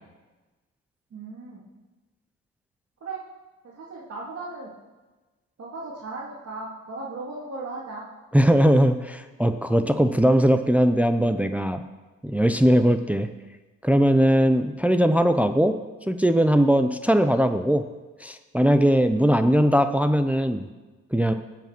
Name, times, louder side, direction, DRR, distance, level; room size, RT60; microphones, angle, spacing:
voice 1, 1.1-1.6 3.0-3.2 3.6-4.7 5.6-8.0 19.1-19.3, right 3 dB, 55° right, -5 dB, 2.8 m, -36 dB
voice 2, 8.3-11.8 12.2-13.3 13.8-15.8 16.1-17.8 18.2-20.7 21.1-21.3, equal, 5° right, 8 dB, 0.6 m, -20 dB
17.5 x 6.0 x 6.0 m, 1.2 s
cardioid pair, 90°, 30 cm